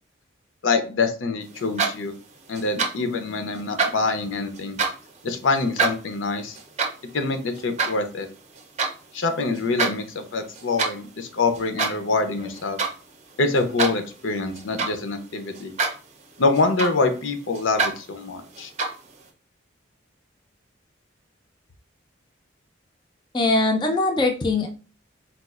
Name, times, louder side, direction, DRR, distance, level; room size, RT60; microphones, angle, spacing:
voice 1, 0.6-2.1 2.5-4.8 5.2-6.6 7.1-8.3 9.1-12.8 13.4-15.7 16.4-18.7, left 3 dB, 85° left, 8 dB, 0.6 m, -25 dB
sound 1, 1.5-2.2 2.5-3.1 3.5-5.1 5.5-9.0 9.4-10.0 10.3-11.0 11.5-12.1 12.4-13.0 13.3-15.1 15.5-16.1 16.4-17.2 17.5-18.0 18.5-19.1, right 4 dB, 35° right, 0.5 m, -27 dB
voice 2, 23.3-24.7, left 2 dB, 25° left, 2 dB, 0.4 m, -21 dB
4.1 x 2.3 x 2.3 m, 0.36 s
head